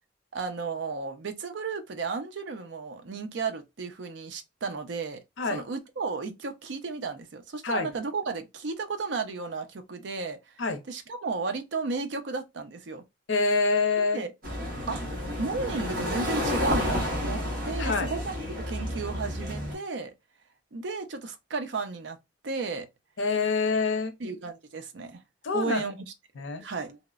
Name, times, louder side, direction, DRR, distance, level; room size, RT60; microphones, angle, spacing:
voice 1, 0.3-5.2 5.5-10.4 10.9-13.0 14.0-14.3 14.9-15.0 15.4-18.3 18.7-20.1 20.7-22.2 22.4-22.9 24.2-25.2 25.5-26.0 26.6-27.0, right 4 dB, 65° right, 0.5 m, -33 dB
voice 2, 13.3-14.2 17.8-18.1 23.2-24.1 25.4-25.8 26.4-26.6, left 4 dB, 80° left, 0.5 m, -26 dB
sound 1, 14.4-19.8, left 1 dB, 50° right, 1.1 m, -30 dB
2.9 x 2.0 x 2.3 m
head